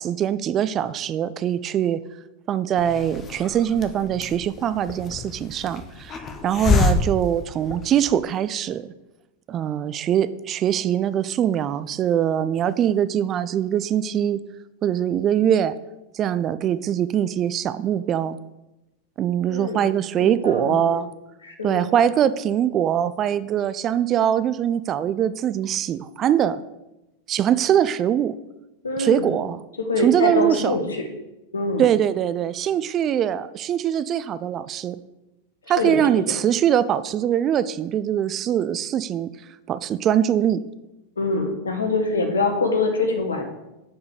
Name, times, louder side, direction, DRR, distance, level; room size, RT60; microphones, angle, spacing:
voice 1, 0.0-2.0 2.5-8.9 9.5-14.4 14.8-15.7 16.1-18.4 19.2-21.1 21.6-26.6 27.3-28.3 29.0-29.6 30.0-30.8 31.8-35.0 35.7-39.3 39.7-40.6, right 10 dB, 30° right, 15 dB, 0.3 m, -22 dB
Hiss, 2.8-8.3, left 4 dB, 25° left, 0.8 m, -27 dB
voice 2, 19.5-19.9 20.2-21.0 21.4-21.9 28.8-29.4 29.8-31.1 31.5-31.9 35.6-36.2 41.2-43.4, left 2 dB, 70° left, 6 dB, 1.3 m, -25 dB
9.1 x 4.8 x 4.9 m, 0.97 s
figure-of-eight pair, 90°, 0 cm